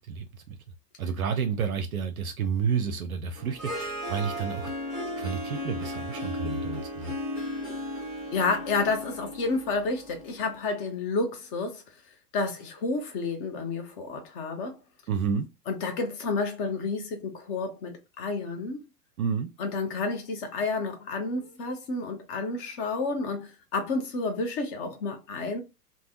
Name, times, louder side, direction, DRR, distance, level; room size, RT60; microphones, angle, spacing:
voice 1, 0.1-0.6 1.0-4.7 5.2-7.1 15.1-15.5 19.2-19.5, right 6 dB, 65° right, 0.6 m, -30 dB
Harp, 3.4-10.5, equal, ahead, 1.0 m, -35 dB
voice 2, 8.3-11.8 12.3-14.8 15.7-18.8 19.6-25.6, left 3 dB, 20° left, 0.5 m, -30 dB
3.2 x 2.1 x 2.6 m
figure-of-eight pair, 100°, 47 cm